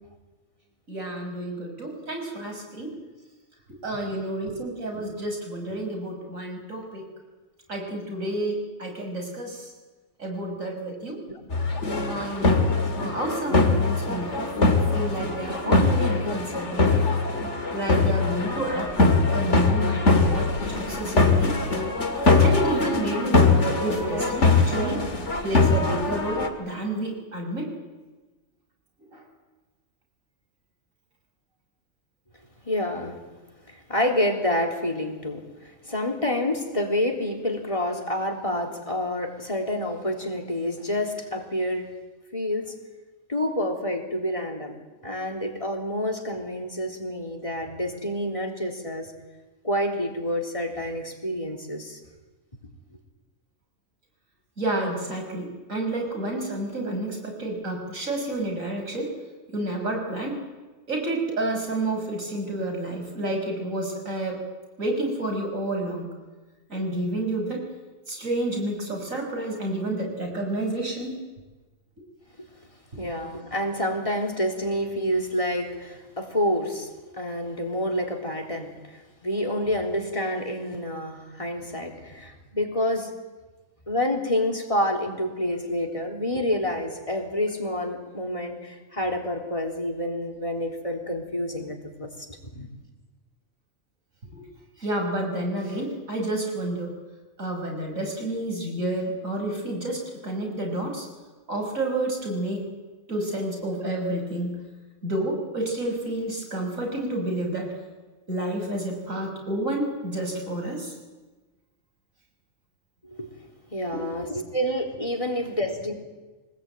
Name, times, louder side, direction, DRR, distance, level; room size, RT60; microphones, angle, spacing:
voice 1, 0.9-2.9 3.8-7.0 7.7-9.7 10.2-11.2 12.1-12.6 13.0-14.5 14.9-16.8 17.7-21.6 22.4-25.0 25.4-27.7 29.1-29.2 54.6-59.1 59.5-60.4 60.9-64.4 64.8-66.1 66.7-67.7 68.1-71.2 94.3-94.4 94.8-96.9 97.4-101.1 101.5-102.6 103.1-104.6 105.0-107.7 108.3-110.9 113.9-114.1, right 1 dB, 85° right, 2 dB, 6.3 m, -30 dB
sound 1, 11.5-26.5, left 3 dB, 60° left, 2.8 m, -22 dB
voice 2, 32.7-33.2 33.9-35.4 35.8-41.9 42.3-42.7 43.3-44.8 45.0-49.1 49.6-52.0 73.0-76.9 77.2-78.7 79.2-83.1 83.9-92.1 92.5-92.7 113.2-113.3 113.7-115.9, left 1 dB, 25° left, 2 dB, 3.7 m, -28 dB
24.5 x 19.5 x 9.2 m, 1.2 s
omnidirectional pair, 1.3 m